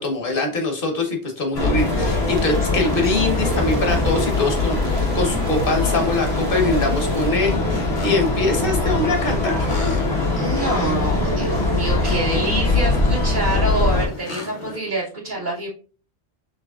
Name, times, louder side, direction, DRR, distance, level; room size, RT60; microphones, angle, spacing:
voice 1, 0.0-9.7, left 3 dB, 60° left, 4 dB, 1.2 m, -23 dB
sound 1, 1.5-14.1, left 2 dB, 90° left, 1.5 m, -21 dB
sound 2, 1.8-7.3, right 5 dB, 90° right, 1.0 m, -40 dB
sound 3, 7.2-14.8, left 2 dB, 35° left, 0.8 m, -36 dB
voice 2, 10.4-15.7, right 1 dB, 50° right, -7 dB, 1.3 m, -26 dB
6.2 x 3.1 x 2.4 m, 0.38 s
omnidirectional pair, 1.0 m